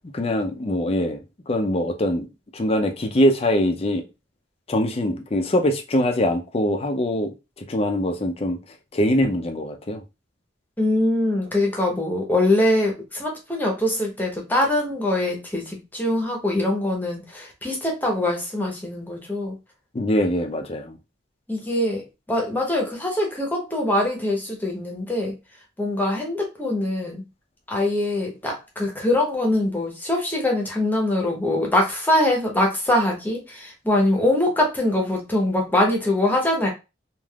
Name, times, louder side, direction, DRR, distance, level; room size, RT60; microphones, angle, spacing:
voice 1, 0.1-2.3 2.5-4.0 4.7-10.0 19.9-21.0, left 1 dB, 30° left, 0.5 m, -23 dB
voice 2, 10.8-19.6 21.5-25.3 25.8-27.3 27.7-36.7, left 1 dB, 10° left, 0.9 m, -23 dB
3.3 x 2.5 x 2.3 m
head